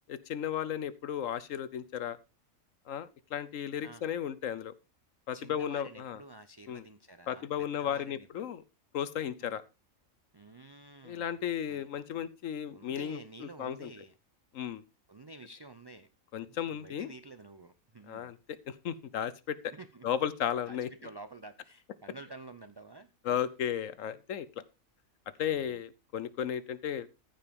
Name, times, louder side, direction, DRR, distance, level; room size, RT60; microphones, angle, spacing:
voice 1, 0.1-2.2 2.9-4.7 5.3-6.2 6.7-6.8 7.3-8.6 8.9-9.6 11.0-13.9 14.5-14.8 16.3-17.1 18.1-18.4 18.7-19.6 20.0-20.9 23.2-24.5 25.4-27.1, left 9 dB, 70° left, 16 dB, 1.1 m, -34 dB
voice 2, 5.3-8.5 9.4-9.5 10.3-11.4 11.7-11.9 12.7-14.1 15.1-16.1 16.5-18.3 19.7-20.1 20.6-23.1 25.5-25.8, right 2 dB, 35° right, 10 dB, 0.4 m, -50 dB
14.5 x 5.2 x 5.2 m, 0.29 s
omnidirectional pair, 1.4 m